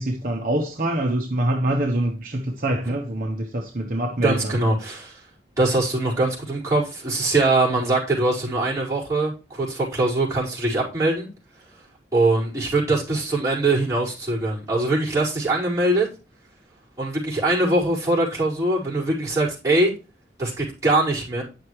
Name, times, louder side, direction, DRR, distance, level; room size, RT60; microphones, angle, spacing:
voice 1, 0.0-4.6, right 1 dB, 50° right, 1.1 m, -25 dB
voice 2, 4.2-5.2 5.6-11.3 12.1-16.1 17.0-19.9 20.4-21.4, right 2 dB, 20° right, 4.8 m, -22 dB
10.0 x 6.5 x 3.2 m
head